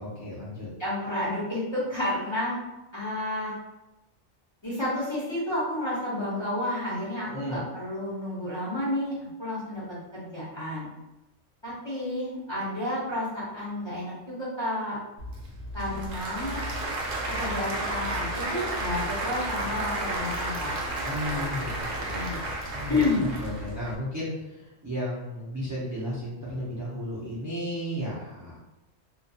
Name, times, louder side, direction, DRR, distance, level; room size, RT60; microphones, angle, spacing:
voice 1, 0.0-0.7 7.2-7.6 21.0-22.4 22.7-28.6, equal, 25° right, -9 dB, 0.4 m, -34 dB
voice 2, 0.8-2.6 2.9-3.5 4.6-9.1 9.4-9.8 10.1-10.9 11.6-15.0 15.7-16.6 17.4-20.7 22.1-22.4 22.9-23.2, left 1 dB, 30° left, -9 dB, 0.7 m, -30 dB
Applause / Crowd, 15.2-23.9, right 1 dB, 60° right, 0.7 m, -32 dB
2.3 x 2.3 x 2.7 m, 0.97 s
omnidirectional pair, 1.3 m